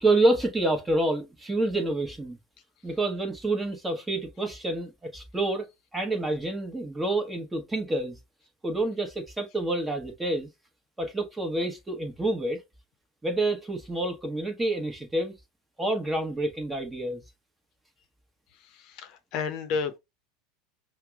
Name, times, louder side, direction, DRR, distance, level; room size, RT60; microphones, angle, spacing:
voice 1, 0.0-2.4 2.8-5.7 5.9-8.2 8.6-10.5 11.0-12.6 13.2-15.3 15.8-17.2, right 2 dB, 10° right, 1.0 m, -28 dB
voice 2, 18.5-20.0, left 5 dB, 50° left, 0.6 m, -32 dB
5.6 x 2.1 x 2.3 m
hypercardioid pair, 85°, 0 cm